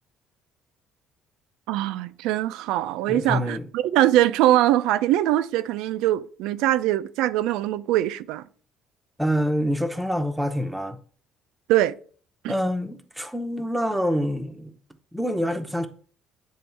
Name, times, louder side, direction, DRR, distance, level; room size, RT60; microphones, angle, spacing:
voice 1, 1.7-8.4 11.7-11.9 12.4-12.5, right 13 dB, 90° right, 0.4 m, -22 dB
voice 2, 3.1-3.7 9.2-11.0 12.5-14.7 15.1-15.9, equal, 5° right, 0.7 m, -26 dB
9.2 x 3.1 x 4.5 m
cardioid pair, 140°, 0 cm